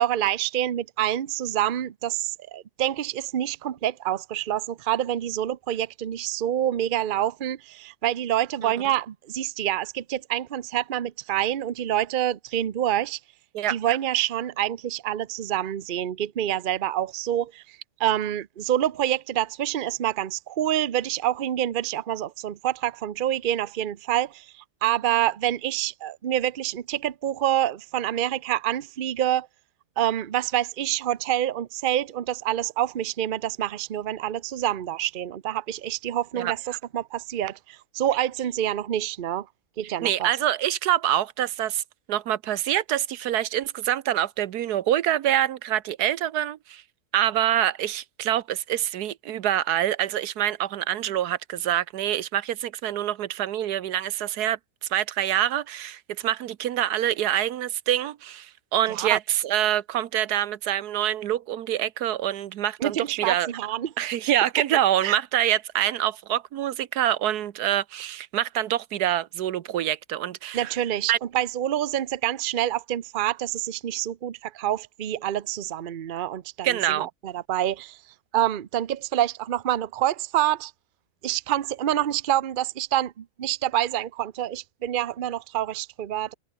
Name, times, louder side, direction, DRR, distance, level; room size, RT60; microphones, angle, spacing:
voice 1, 0.0-13.2 13.7-24.5 24.8-29.5 30.0-39.5 39.8-40.3 58.9-59.2 62.8-63.9 65.0-65.2 70.5-78.0 78.3-80.7 81.2-86.3, right 12 dB, 45° right, 0.7 m, -27 dB
voice 2, 40.0-41.8 42.1-46.8 47.1-63.5 64.0-70.7 71.1-71.2 76.6-77.1, right 11 dB, 85° right, 1.4 m, -26 dB
omnidirectional pair, 1.7 m